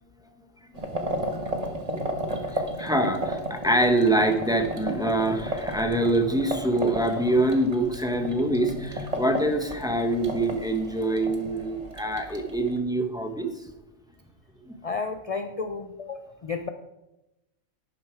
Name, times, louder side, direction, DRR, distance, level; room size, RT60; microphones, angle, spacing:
sound 1, 0.7-12.8, right 1 dB, 30° right, 1.3 m, -34 dB
voice 1, 1.6-13.5 14.7-14.8, right 1 dB, 5° right, 4 dB, 1.0 m, -25 dB
voice 2, 14.8-16.7, left 4 dB, 50° left, 7 dB, 0.4 m, -32 dB
11.5 x 9.7 x 4.6 m, 0.96 s
omnidirectional pair, 1.4 m